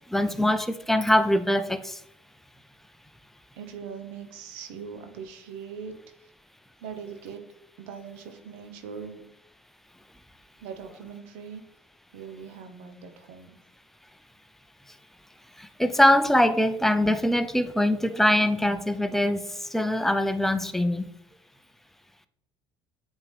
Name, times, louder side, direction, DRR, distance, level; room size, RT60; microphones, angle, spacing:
voice 1, 0.1-2.0 15.6-19.4 19.7-21.1, left 1 dB, ahead, 0.5 m, -23 dB
voice 2, 3.5-6.3 6.8-7.4 7.8-9.2 10.6-11.6 12.1-13.5, right 6 dB, 80° right, 0.9 m, -41 dB
8.1 x 3.7 x 3.4 m
hypercardioid pair, 70°, 12 cm